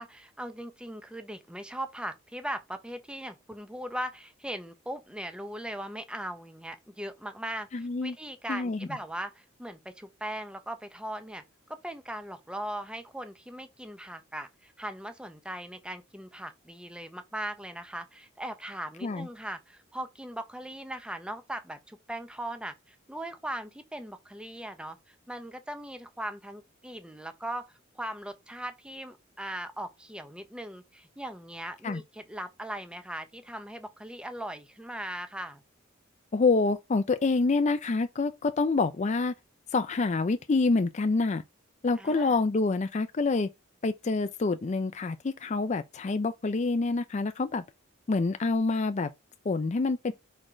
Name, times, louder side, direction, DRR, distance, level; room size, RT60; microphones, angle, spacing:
voice 1, 0.0-11.4 11.7-35.6 42.0-42.4, right 1 dB, 5° right, 0.8 m, -39 dB
voice 2, 7.7-8.1 8.5-8.9 19.0-19.3 31.8-32.0 36.3-39.3 39.7-41.4 41.8-43.5 43.8-47.6 48.1-49.1 49.5-50.1, left 3 dB, 35° left, 0.4 m, -27 dB
4.5 x 4.3 x 5.0 m
head